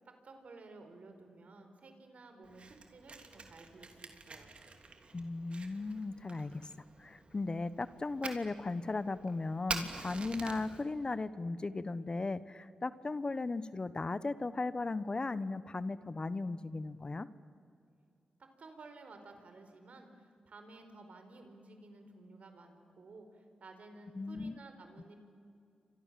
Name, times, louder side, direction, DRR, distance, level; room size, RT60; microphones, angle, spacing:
voice 1, 0.2-2.6 2.9-4.5 18.6-25.2, right 3 dB, 65° right, 6 dB, 4.5 m, -54 dB
Fire, 2.4-10.8, right 3 dB, 50° right, 3.0 m, -46 dB
voice 2, 5.1-6.7 7.0-17.3 24.1-24.6, left 3 dB, 35° left, 15 dB, 1.0 m, -37 dB
29.5 x 25.0 x 7.6 m, 2.4 s
cardioid pair, 60°, 3 cm